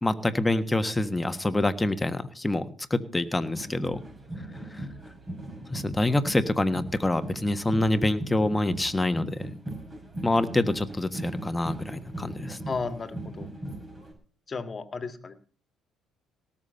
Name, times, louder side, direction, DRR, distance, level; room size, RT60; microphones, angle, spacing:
voice 1, 0.0-4.0 4.7-4.9 5.7-9.5 10.2-12.6, left 2 dB, 15° left, 10 dB, 1.5 m, -26 dB
sound 1, 3.5-14.1, right 1 dB, 30° right, 5.8 m, -39 dB
voice 2, 12.7-13.5 14.5-15.4, left 4 dB, 35° left, 10 dB, 1.9 m, -34 dB
18.0 x 7.2 x 6.8 m, 0.40 s
hypercardioid pair, 50°, 0 cm